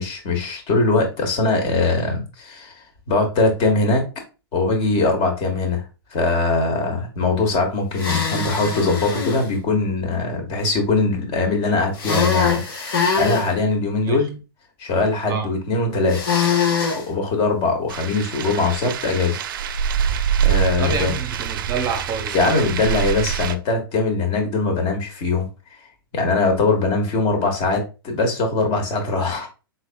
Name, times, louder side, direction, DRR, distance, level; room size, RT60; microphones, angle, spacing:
voice 1, 0.0-2.8 3.1-4.0 4.5-5.8 6.1-14.4 14.8-16.2 16.9-19.4 20.4-21.1 22.3-25.5 26.1-29.5, left 3 dB, 40° left, 1.5 m, -21 dB
sound 1, 7.9-9.4 12.0-13.5 16.1-17.0, left 5 dB, 65° left, 1.5 m, -22 dB
sound 2, 17.9-23.6, right 8 dB, 60° right, 0.4 m, -25 dB
voice 2, 20.8-22.6, right 5 dB, 25° right, 0.7 m, -28 dB
4.0 x 3.4 x 2.3 m
hypercardioid pair, 115°, 13 cm